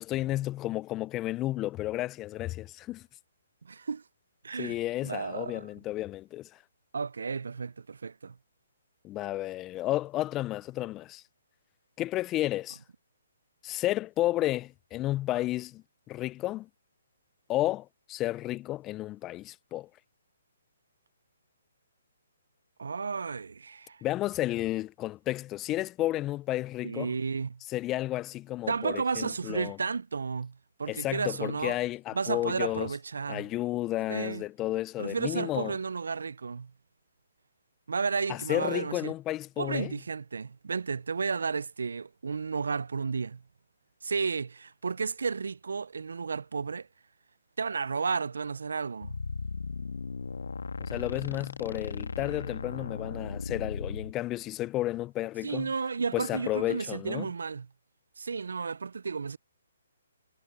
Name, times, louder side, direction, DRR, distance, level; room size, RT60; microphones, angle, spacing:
voice 1, 0.0-3.1 4.6-6.5 9.0-11.2 12.0-12.8 13.6-16.7 17.5-19.9 24.0-27.1 27.7-29.8 30.9-32.9 33.3-35.7 38.3-39.9 50.8-55.7 56.1-57.3, left 15 dB, 20° left, 0.4 m, -32 dB
voice 2, 3.6-4.0 4.4-4.8 5.0-5.7 6.9-8.4 22.8-24.0 26.8-27.6 28.7-31.8 32.1-33.5 34.1-34.4 35.0-36.7 37.9-39.1 39.6-43.4 44.0-46.9 47.6-49.2 55.4-57.7 58.2-59.4, right 5 dB, 80° right, 0.4 m, -32 dB
sound 1, 49.0-54.1, left 4 dB, 80° left, 1.4 m, -36 dB
hypercardioid pair, 145°, 0 cm